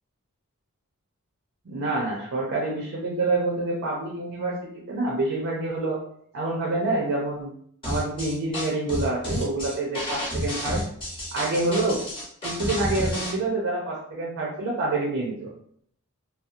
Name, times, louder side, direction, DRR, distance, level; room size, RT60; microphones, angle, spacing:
voice 1, 1.7-6.0 6.3-7.5 7.8-10.8 11.3-12.0 12.4-15.5, right 2 dB, 60° right, -3 dB, 0.5 m, -27 dB
sound 1, 7.8-13.3, left 1 dB, 25° left, 0.8 m, -30 dB
2.7 x 2.0 x 2.4 m, 0.65 s
head